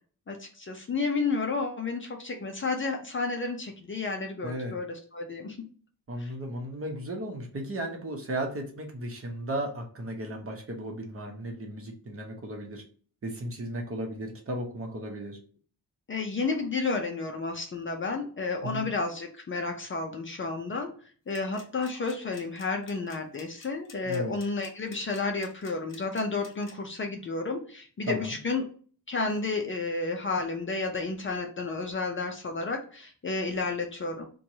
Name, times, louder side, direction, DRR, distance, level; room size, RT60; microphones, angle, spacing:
voice 1, 0.3-5.6 6.2-6.3 16.1-20.9 21.3-28.6 29.1-34.3, left 3 dB, 35° left, 3 dB, 0.5 m, -31 dB
voice 2, 4.4-4.7 6.1-12.8 13.2-15.4 18.6-18.9 24.0-24.3 28.1-28.3, right 1 dB, 35° right, 2 dB, 0.8 m, -35 dB
sound 1, 21.3-26.7, left 5 dB, 55° left, 1.0 m, -50 dB
4.4 x 2.3 x 2.7 m, 0.43 s
wide cardioid pair, 140°, 38 cm